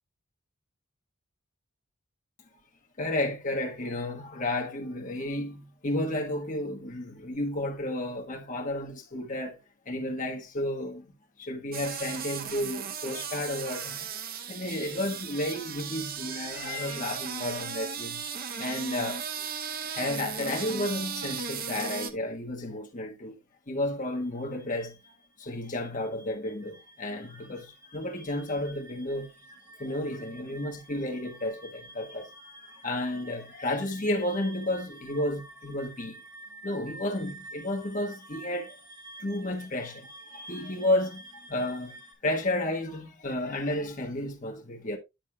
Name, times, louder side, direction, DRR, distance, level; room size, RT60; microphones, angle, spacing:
voice 1, 3.0-9.6 9.8-11.1 11.4-14.1 14.5-18.2 18.6-19.3 19.9-23.4 23.7-25.0 25.4-29.3 29.8-36.2 36.6-38.8 39.2-45.0, left 1 dB, 35° left, 1.4 m, -32 dB
sound 1, 11.7-22.1, right 6 dB, 45° right, 0.7 m, -36 dB
sound 2, 24.3-42.1, right 1 dB, 20° right, 2.9 m, -50 dB
10.5 x 6.3 x 2.3 m
head